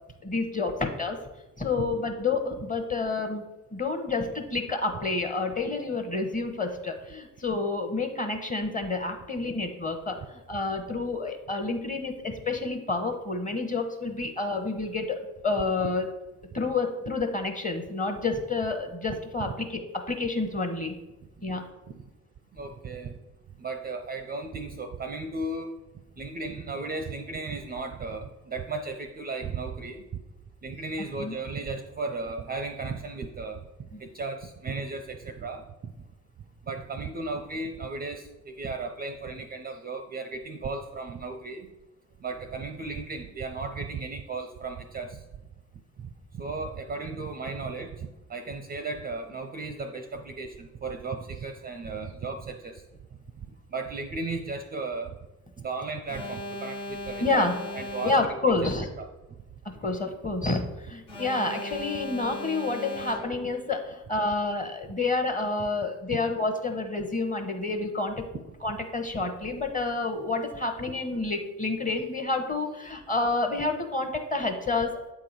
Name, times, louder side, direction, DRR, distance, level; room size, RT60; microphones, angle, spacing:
voice 1, 0.2-1.2 1.6-3.4 3.7-16.1 16.5-19.8 20.1-20.9 21.4-21.6 31.2-31.4 33.9-34.0 57.2-57.5 58.0-58.9 59.6-68.3 68.6-74.9, left 3 dB, 20° left, 5 dB, 1.0 m, -29 dB
voice 2, 22.5-23.1 23.6-25.7 26.2-30.1 30.6-33.6 34.0-35.6 36.6-41.7 42.2-45.2 46.3-52.8 53.7-55.1 55.6-58.2 58.5-58.7 59.0-59.1, right 3 dB, 25° right, 7 dB, 0.5 m, -35 dB
Alarm, 56.1-58.6 61.1-63.6, left 1 dB, 80° left, 1.6 m, -37 dB
8.2 x 3.8 x 4.7 m, 1.0 s
figure-of-eight pair, 45°, 40 cm